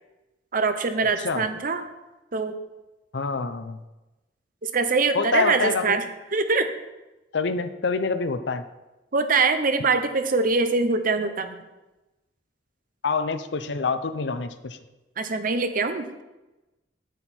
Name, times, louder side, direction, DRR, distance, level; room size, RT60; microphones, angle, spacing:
voice 1, 0.5-1.8 2.3-2.5 4.6-6.0 6.3-6.7 9.1-11.6 15.2-16.2, right 4 dB, 50° right, 9 dB, 0.8 m, -23 dB
voice 2, 3.1-3.8 5.1-6.0 7.3-8.6 13.0-14.8, left 4 dB, 65° left, 11 dB, 0.6 m, -26 dB
9.1 x 8.1 x 4.4 m, 1.0 s
head